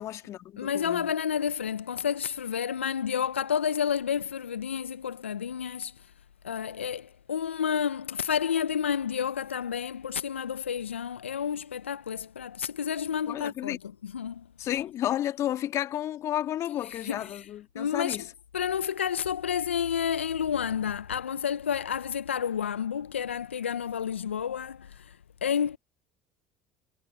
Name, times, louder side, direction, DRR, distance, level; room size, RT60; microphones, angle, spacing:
voice 1, 0.0-1.1 13.3-13.8 14.6-18.3, left 12 dB, 50° left, 2.2 m, -32 dB
voice 2, 0.6-5.9 6.4-13.8 14.0-14.4 16.8-17.5 17.7-18.2 18.5-25.8, left 8 dB, 90° left, 0.5 m, -30 dB
hypercardioid pair, 70°, 6 cm